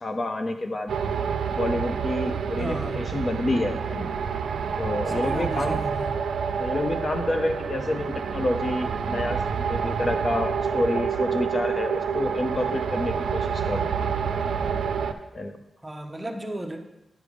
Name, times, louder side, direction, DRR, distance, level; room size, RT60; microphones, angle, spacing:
voice 1, 0.0-0.9 1.5-4.1 4.8-5.8 6.6-14.0 15.3-15.6, left 1 dB, 35° left, 6 dB, 0.5 m, -28 dB
sound 1, 0.9-15.1, right 6 dB, 90° right, 0.4 m, -28 dB
voice 2, 2.6-3.1 5.1-6.2 15.8-16.8, right 1 dB, 10° right, 3 dB, 0.7 m, -34 dB
9.1 x 3.4 x 4.9 m, 0.93 s
wide cardioid pair, 115°, 0 cm